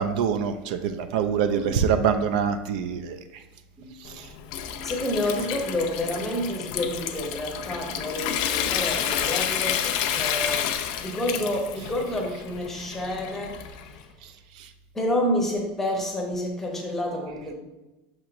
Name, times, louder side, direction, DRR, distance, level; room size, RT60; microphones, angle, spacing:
voice 1, 0.0-3.4 4.0-4.3 11.8-11.9 14.2-14.7, right 7 dB, 75° right, 8 dB, 0.3 m, -26 dB
voice 2, 1.5-1.8 3.8-4.2 4.8-14.0 14.9-17.5, left 1 dB, 10° left, 0 dB, 0.7 m, -29 dB
Water tap faucet / Sink (filling or washing) / Trickle dribble, 4.1-14.0, left 9 dB, 60° left, 0.4 m, -30 dB
6.3 x 3.0 x 2.5 m, 1.0 s
supercardioid pair, 150°, 4 cm